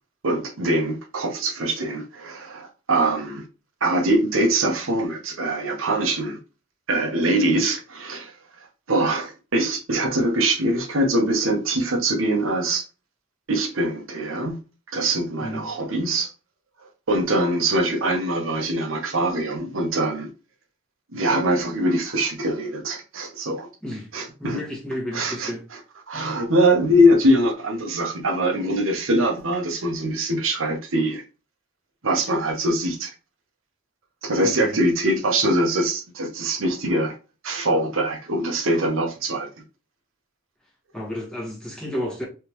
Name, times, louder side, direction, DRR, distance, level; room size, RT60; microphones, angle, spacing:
voice 1, 0.2-3.4 3.8-6.4 6.9-8.3 8.9-12.8 13.5-14.6 14.9-16.3 17.1-20.3 21.1-23.7 24.1-24.6 25.1-25.5 26.1-31.2 32.0-33.1 34.2-37.1 37.4-39.5, right 1 dB, 85° right, 1.0 m, -23 dB
voice 2, 24.4-25.6 34.4-34.8 40.9-42.2, equal, 5° left, 1.2 m, -31 dB
3.5 x 3.3 x 3.0 m
head